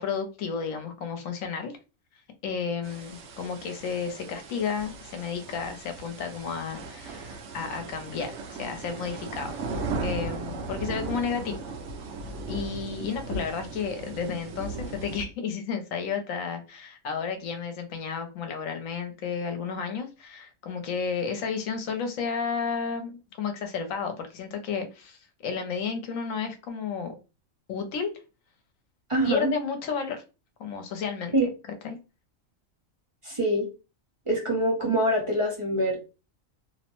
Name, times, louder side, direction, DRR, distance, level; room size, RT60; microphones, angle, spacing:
voice 1, 0.0-1.7 2.4-9.6 10.0-11.6 12.5-27.1 27.7-28.1 29.2-30.2 30.6-31.3 31.8-32.0, left 6 dB, 75° left, 1.0 m, -32 dB
sound 1, 2.8-15.2, right 3 dB, 70° right, 0.9 m, -37 dB
voice 2, 29.1-29.5 31.3-31.5 33.2-33.7 34.3-36.0, right 1 dB, 30° right, 0.7 m, -24 dB
2.7 x 2.1 x 2.9 m
omnidirectional pair, 1.4 m